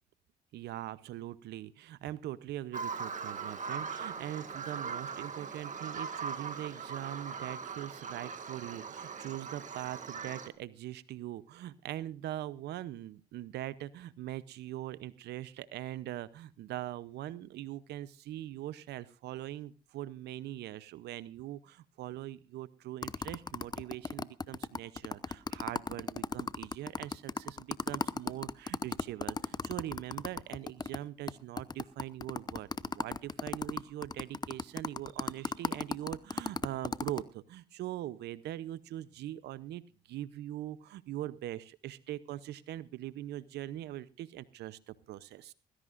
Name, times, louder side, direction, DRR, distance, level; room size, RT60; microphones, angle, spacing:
voice 1, 0.5-45.5, right 13 dB, 75° right, 17 dB, 0.7 m, -42 dB
Bird vocalization bird call bird song, 2.7-10.5, right 5 dB, 45° right, 2.1 m, -40 dB
sound 1, 23.0-31.0 31.3-31.4 31.6-37.2, left 4 dB, 25° left, 0.8 m, -35 dB
19.5 x 16.0 x 2.5 m, 0.32 s
supercardioid pair, 65°, 17 cm